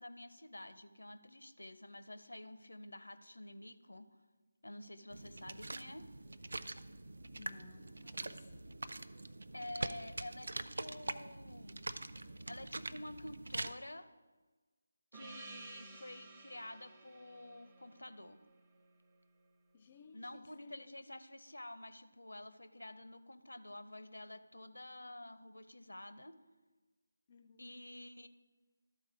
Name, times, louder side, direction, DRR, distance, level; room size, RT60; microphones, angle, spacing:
voice 1, 0.0-4.1 4.6-6.1 9.5-11.8 12.5-14.1 15.1-18.4 20.1-26.4 27.6-28.3, left 1 dB, 75° left, 0.6 m, -49 dB
sound 1, 5.1-13.7, right 2 dB, 65° right, 0.4 m, -44 dB
voice 2, 7.3-8.7 19.7-21.0 27.3-27.8, left 4 dB, 30° left, 0.4 m, -59 dB
Gong, 15.1-19.5, right 4 dB, 20° right, 0.8 m, -56 dB
12.5 x 4.2 x 4.8 m
figure-of-eight pair, 155°, 0 cm